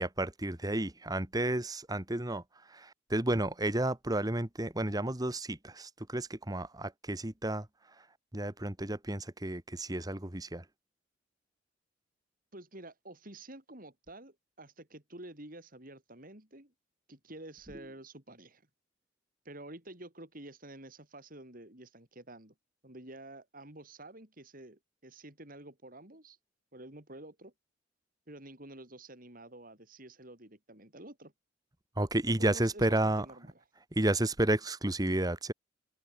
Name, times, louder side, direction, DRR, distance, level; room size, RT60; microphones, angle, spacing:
voice 1, 0.0-2.4 3.1-7.6 8.3-10.6 32.0-33.2 33.9-35.5, right 1 dB, 20° right, 1.6 m, -31 dB
voice 2, 12.5-16.7 17.1-18.6 19.4-22.5 22.8-26.4 26.7-27.5 28.3-31.3 32.2-33.6, right 1 dB, 45° right, 5.7 m, -49 dB
open air
head